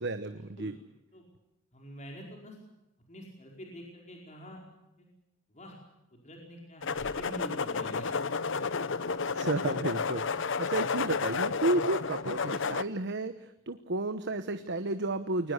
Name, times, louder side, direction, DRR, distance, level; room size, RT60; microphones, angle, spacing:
voice 1, 0.0-0.7 9.3-15.5, right 2 dB, 60° right, 9 dB, 1.1 m, -32 dB
voice 2, 1.7-2.6 3.1-4.6 5.0-5.1 5.5-5.8 6.1-8.1, equal, 35° left, 0 dB, 4.9 m, -46 dB
sound 1, 6.8-12.8, left 5 dB, 65° left, 0.9 m, -31 dB
22.5 x 20.0 x 8.1 m, 0.92 s
head